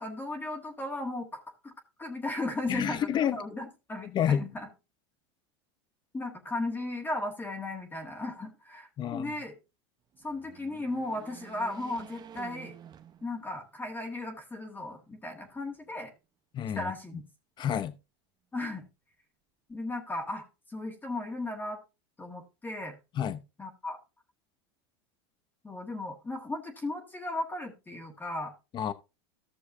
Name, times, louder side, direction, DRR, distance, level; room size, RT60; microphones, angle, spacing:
voice 1, 0.0-1.7 2.0-4.7 6.1-9.6 10.2-12.8 13.2-16.1 16.7-17.3 18.5-18.8 19.7-21.8 22.2-23.0 23.6-24.0 25.6-28.5, left 2 dB, 15° left, 1.7 m, -36 dB
voice 2, 2.7-3.4 4.0-4.4 9.0-9.3 16.5-16.9 17.6-17.9 23.2-23.4 28.7-28.9, left 9 dB, 30° left, 0.8 m, -29 dB
sound 1, 10.1-13.7 14.2-14.3 15.4-16.2, right 8 dB, 30° right, 0.9 m, -50 dB
15.0 x 6.4 x 2.6 m
supercardioid pair, 115°, 14 cm